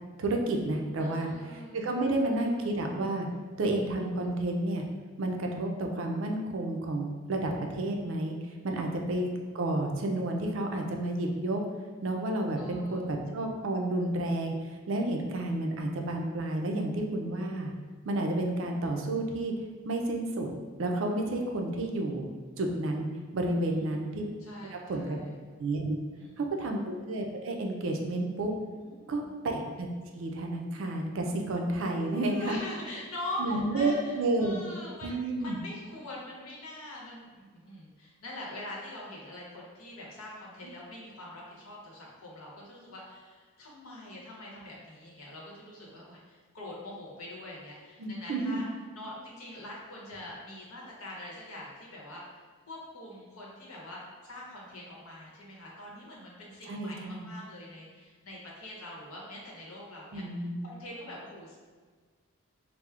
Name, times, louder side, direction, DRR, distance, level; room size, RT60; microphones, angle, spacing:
voice 1, 0.2-1.3 1.7-3.3 3.6-4.8 5.2-9.3 9.5-11.6 12.0-14.5 14.9-17.7 18.0-19.5 19.8-20.5 20.8-22.2 22.6-24.2 24.7-25.2 25.6-26.0 26.4-28.5 29.1-29.9 30.1-32.6 33.4-34.6 35.0-35.6 40.6-40.7 48.0-48.7 56.7-57.3 60.1-60.7, right 2 dB, 65° right, 2 dB, 0.4 m, -31 dB
voice 2, 1.0-2.5 8.7-9.1 12.6-13.0 23.5-24.0 24.4-25.4 26.1-26.7 28.8-29.3 31.8-35.1 35.4-48.6 48.9-61.6, left 1 dB, 85° left, -4 dB, 0.8 m, -44 dB
4.3 x 2.0 x 2.4 m, 1.6 s
head